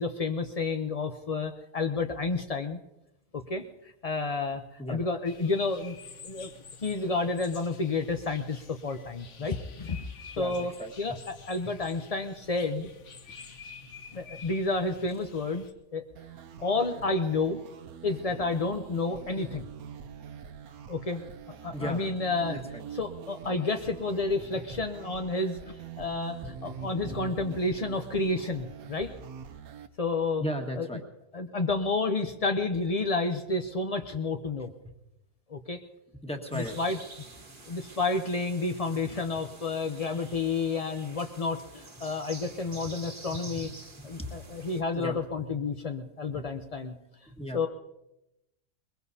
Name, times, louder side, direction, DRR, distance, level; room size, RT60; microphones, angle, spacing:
voice 1, 0.0-2.8 3.3-6.0 6.2-6.5 6.8-10.1 10.4-10.7 11.0-12.9 14.1-15.6 15.9-16.0 16.6-17.6 18.0-19.7 20.9-21.2 21.6-22.6 22.9-29.1 30.0-30.5 30.8-30.9 31.3-34.7 35.5-35.8 36.5-37.0 37.7-43.7 44.0-46.9 47.5-47.7, left 3 dB, 75° left, 6 dB, 0.3 m, -30 dB
sound 1, 5.2-15.7, left 5 dB, 50° left, 1.3 m, -49 dB
voice 2, 10.4-10.9 11.6-11.7 21.7-22.0 22.5-22.8 27.0-27.2 30.4-31.0 36.2-37.0 43.3-43.4 43.6-44.3 44.9-45.2 46.3-46.4 47.4-47.7, equal, 5° left, 3 dB, 1.4 m, -36 dB
sound 2, 16.2-29.9, right 7 dB, 65° right, 1.2 m, -44 dB
sound 3, 36.5-44.8, right 2 dB, 35° right, 1.6 m, -48 dB
21.5 x 21.5 x 2.8 m, 0.91 s
omnidirectional pair, 1.7 m